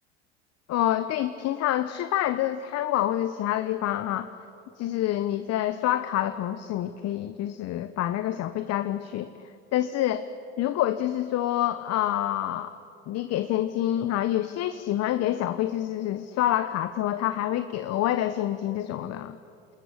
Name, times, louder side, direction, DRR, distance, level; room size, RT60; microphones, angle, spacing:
voice 1, 0.7-4.3 4.8-9.3 9.7-10.3 10.6-12.7 13.1-19.4, left 12 dB, 45° left, 11 dB, 1.2 m, -27 dB
27.5 x 20.5 x 10.0 m, 2.5 s
hypercardioid pair, 85°, 35 cm